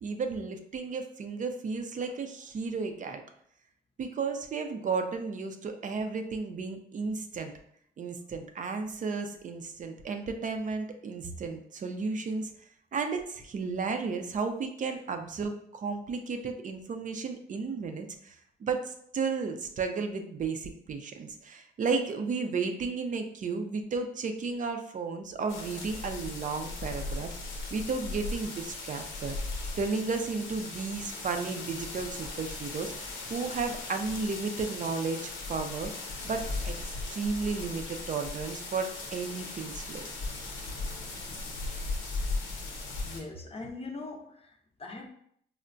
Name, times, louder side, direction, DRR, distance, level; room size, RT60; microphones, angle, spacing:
voice 1, 0.0-3.2 4.0-7.5 8.0-12.5 12.9-18.3 18.6-27.3 27.7-29.4 29.8-32.9 33.3-35.9 36.2-40.0, right 4 dB, 40° right, 6 dB, 0.5 m, -33 dB
sound 1, 25.5-43.2, left 3 dB, 80° left, 0.8 m, -38 dB
voice 2, 43.0-45.1, left 3 dB, 30° left, 1 dB, 0.6 m, -41 dB
4.3 x 2.1 x 2.5 m, 0.67 s
cardioid pair, 90°, 20 cm